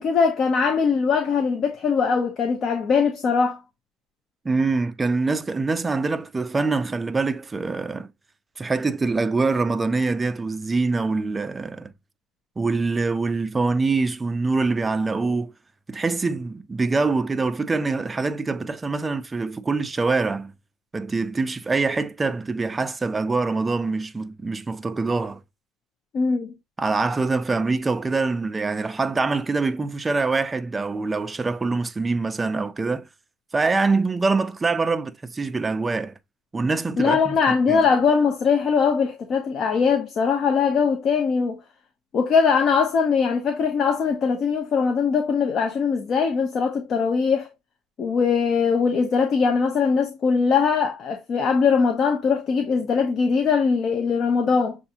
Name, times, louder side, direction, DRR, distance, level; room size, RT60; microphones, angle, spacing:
voice 1, 0.0-3.6 26.1-26.5 37.0-41.6 42.1-47.5 48.0-54.8, left 5 dB, 40° left, 0.6 m, -21 dB
voice 2, 4.4-8.1 8.6-11.9 12.6-15.5 15.9-20.5 20.9-25.4 26.8-33.1 33.5-36.1 36.5-37.4 37.7-37.8, right 3 dB, 15° right, 0.4 m, -24 dB
6.5 x 2.4 x 2.8 m
cardioid pair, 135°, 0 cm